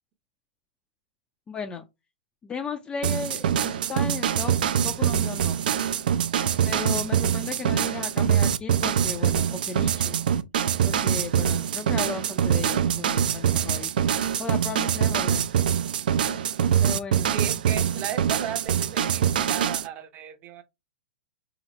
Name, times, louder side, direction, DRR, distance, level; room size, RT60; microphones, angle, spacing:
voice 1, 1.5-1.8 2.4-4.5 4.8-5.6 6.6-10.2 10.8-15.5 16.1-16.3 16.8-17.3, left 5 dB, 15° left, 0.4 m, -35 dB
sound 1, 3.0-19.9, right 9 dB, 60° right, 0.4 m, -24 dB
voice 2, 17.3-20.6, right 10 dB, 30° right, 0.7 m, -36 dB
3.8 x 2.9 x 3.1 m
figure-of-eight pair, 110°, 5 cm